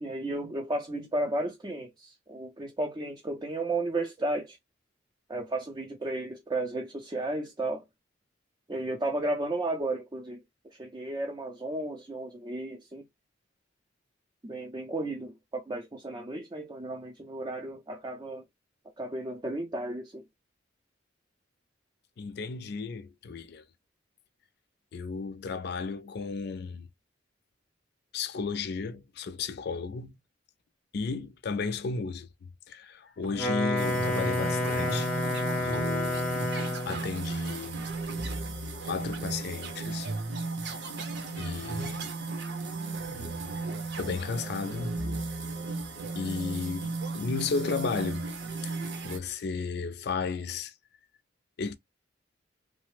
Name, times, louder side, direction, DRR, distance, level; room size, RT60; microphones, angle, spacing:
voice 1, 0.0-4.6 5.3-7.8 8.7-13.0 14.4-18.4 19.0-20.2, right 2 dB, 20° right, 0.5 m, -33 dB
voice 2, 22.2-23.6 24.9-26.9 28.1-30.2 30.9-35.1 35.6-37.8 38.8-40.1 40.7-40.8 41.4-42.1 44.0-45.0 46.1-48.3 48.6-48.7 49.0-50.7 51.6-51.7, left 4 dB, 60° left, 0.4 m, -34 dB
Wind instrument woodwind instrument, 33.2-37.1, left 2 dB, 5° left, 0.8 m, -29 dB
sound 1, 33.8-49.2, right 3 dB, 60° right, 0.7 m, -35 dB
3.1 x 2.0 x 3.1 m
head